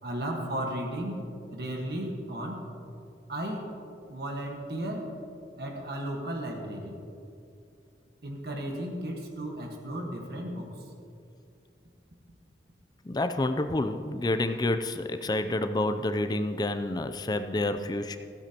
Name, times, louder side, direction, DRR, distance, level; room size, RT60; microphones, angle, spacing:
voice 1, 0.0-2.7 3.3-3.7 4.1-5.2 5.6-7.0 8.2-10.9, right 1 dB, 60° right, 1 dB, 1.4 m, -35 dB
voice 2, 13.0-18.2, left 2 dB, 20° left, 8 dB, 0.4 m, -29 dB
15.0 x 15.0 x 2.9 m, 2.5 s
head